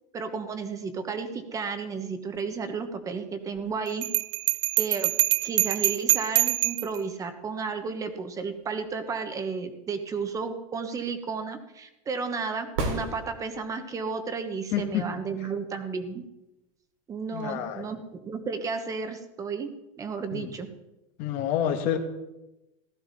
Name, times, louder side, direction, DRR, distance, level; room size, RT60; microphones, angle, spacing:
voice 1, 0.1-4.0 4.8-5.1 5.4-16.2 17.1-19.7 20.0-20.7, right 5 dB, 20° right, 8 dB, 1.2 m, -33 dB
Bell, 4.0-7.0, right 19 dB, 60° right, 0.4 m, -24 dB
sound 1, 12.7-13.9 17.8-17.9, right 2 dB, 90° right, 3.7 m, -31 dB
voice 2, 14.7-15.0 17.3-17.8 20.3-20.5 21.2-22.0, left 10 dB, 50° left, 5 dB, 1.5 m, -28 dB
15.5 x 13.0 x 4.2 m, 0.95 s
supercardioid pair, 155°, 17 cm